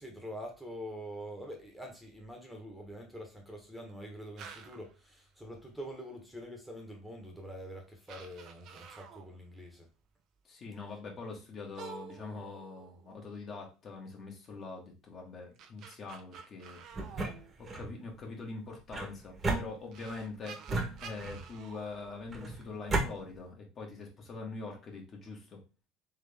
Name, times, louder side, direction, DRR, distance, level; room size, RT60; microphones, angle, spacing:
voice 1, 0.0-9.9, equal, 5° right, 1.3 m, -45 dB
sound 1, 4.4-4.9 7.0-7.1 7.7-7.8 8.1-9.4 11.7-13.4 15.3-18.0 19.4-19.5 19.9-22.8, right 6 dB, 55° right, 0.6 m, -50 dB
voice 2, 10.4-17.2 17.6-20.6 21.0-25.6, left 3 dB, 40° left, 1.6 m, -44 dB
sound 2, 16.9-17.9 18.9-20.2 20.7-21.6 22.3-23.1, right 2 dB, 25° right, 1.3 m, -34 dB
3.7 x 3.3 x 3.5 m
supercardioid pair, 95°, 0 cm